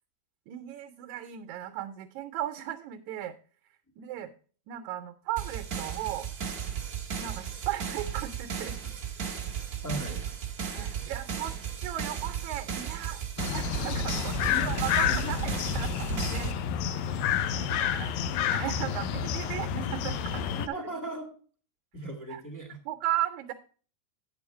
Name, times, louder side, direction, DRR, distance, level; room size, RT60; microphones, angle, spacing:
voice 1, 0.5-3.3 4.0-4.3 4.7-6.3 7.2-8.8 10.7-13.2 13.5-14.4 14.6-16.5 17.5-20.9 22.3-22.4 22.9-23.5, right 12 dB, 75° right, 7 dB, 2.0 m, -36 dB
sound 1, 5.4-16.5, right 8 dB, 55° right, 1.0 m, -35 dB
voice 2, 9.8-10.2 10.7-11.1 14.4-15.3 20.6-21.3 21.9-22.8, right 1 dB, 10° left, 1 dB, 0.8 m, -38 dB
sound 2, 13.4-20.7, left 8 dB, 75° left, 1.8 m, -29 dB
9.2 x 7.1 x 4.4 m, 0.41 s
omnidirectional pair, 3.7 m